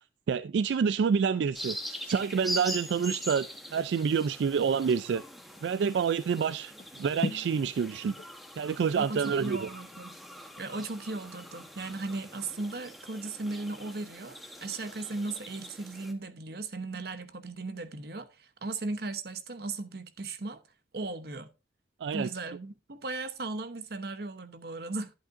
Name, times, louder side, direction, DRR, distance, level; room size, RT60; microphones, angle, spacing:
voice 1, 0.3-1.8 2.0-5.2 5.6-8.1 8.6-9.7 22.0-22.3, right 6 dB, 80° right, 0.3 m, -28 dB
sound 1, 1.5-16.1, equal, ahead, 0.9 m, -43 dB
sound 2, 2.9-11.4 11.8-11.9, left 3 dB, 50° left, 0.6 m, -43 dB
voice 2, 9.0-10.2 10.6-20.6 20.9-21.5 22.1-25.1, right 3 dB, 60° right, 0.9 m, -37 dB
11.0 x 8.1 x 2.5 m
head